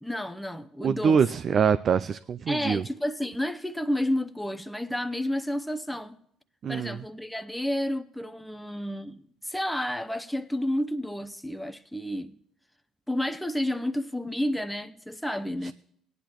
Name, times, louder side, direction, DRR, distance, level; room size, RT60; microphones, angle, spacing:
voice 1, 0.0-1.2 2.5-6.2 6.7-12.3 13.1-15.7, left 1 dB, 5° left, 0.8 m, -31 dB
voice 2, 0.8-2.8 6.6-7.0 15.6-15.7, right 6 dB, 50° right, 0.3 m, -24 dB
17.5 x 10.5 x 3.0 m
supercardioid pair, 75°, 0 cm